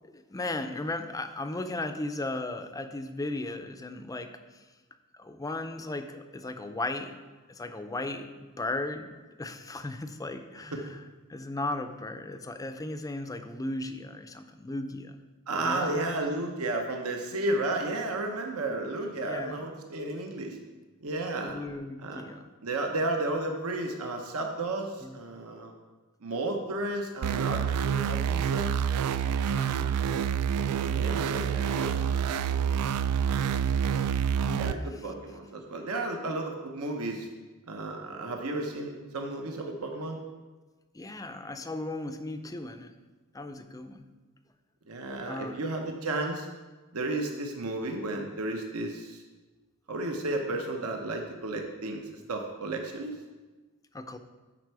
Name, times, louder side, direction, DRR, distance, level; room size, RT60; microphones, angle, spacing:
voice 1, 0.1-4.3 5.1-7.2 7.5-11.0 11.3-15.2 15.6-16.1 19.2-19.7 21.4-22.5 25.0-25.2 29.5-29.9 32.0-32.1 33.9-34.1 34.5-35.0 40.9-42.9 43.3-44.1 45.3-45.6 53.9-54.2, left 2 dB, 15° left, 8 dB, 0.5 m, -36 dB
voice 2, 15.5-20.6 21.0-21.6 22.0-22.2 22.6-25.7 26.2-28.7 30.9-32.7 34.6-37.3 37.7-40.2 44.9-46.5 46.9-49.2 49.9-53.1, right 2 dB, 75° right, 3 dB, 0.9 m, -33 dB
sound 1, 27.2-34.7, right 8 dB, 90° right, 0.3 m, -27 dB
11.0 x 4.4 x 4.7 m, 1.3 s
head